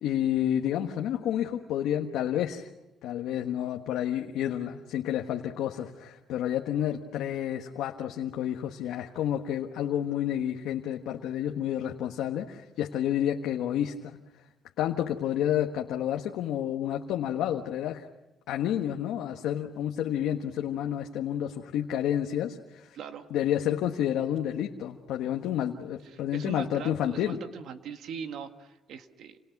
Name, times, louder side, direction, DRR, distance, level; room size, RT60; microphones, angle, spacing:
voice 1, 0.0-2.7 3.0-14.2 14.8-18.1 18.5-23.0 23.3-27.4, left 10 dB, 90° left, 2 dB, 1.4 m, -30 dB
voice 2, 22.9-23.3 26.0-29.4, right 7 dB, 75° right, 7 dB, 1.8 m, -41 dB
30.0 x 27.5 x 6.0 m, 1.0 s
cardioid pair, 90°, 0 cm